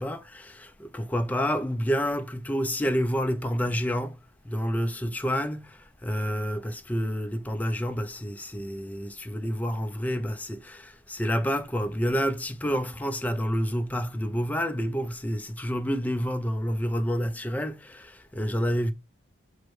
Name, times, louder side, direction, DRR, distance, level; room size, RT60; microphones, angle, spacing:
voice 1, 0.0-18.9, equal, 10° left, 0.4 m, -29 dB
4.6 x 2.1 x 4.6 m
head